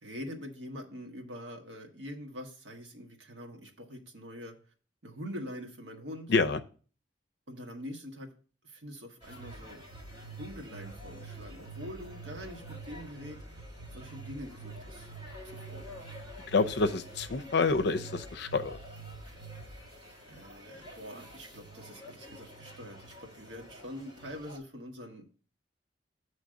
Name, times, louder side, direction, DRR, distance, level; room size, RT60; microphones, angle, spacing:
voice 1, 0.0-4.5 5.0-6.3 7.5-8.3 8.6-9.8 10.4-13.4 13.9-15.1 15.4-15.9 20.3-25.2, equal, 80° right, 3 dB, 1.3 m, -44 dB
voice 2, 6.3-6.6 16.5-18.8, left 4 dB, 65° left, 9 dB, 0.5 m, -27 dB
sound 1, 9.2-24.6, right 2 dB, 30° right, 1.8 m, -47 dB
7.5 x 3.2 x 6.2 m, 0.40 s
head